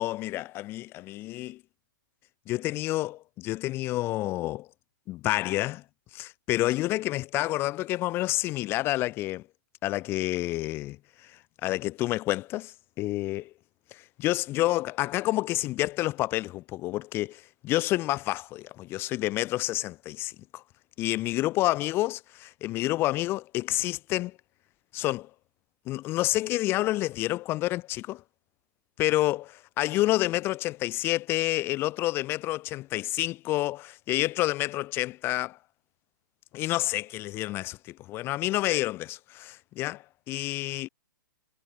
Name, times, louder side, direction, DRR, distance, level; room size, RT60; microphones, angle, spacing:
voice 1, 0.0-1.6 2.5-4.7 5.1-5.8 6.1-9.4 9.8-11.3 11.6-13.5 13.9-20.6 21.0-24.4 24.9-25.3 25.9-28.2 29.0-35.6 36.5-40.9, left 17 dB, 20° left, 0.3 m, -29 dB
figure-of-eight pair, 115°, 11 cm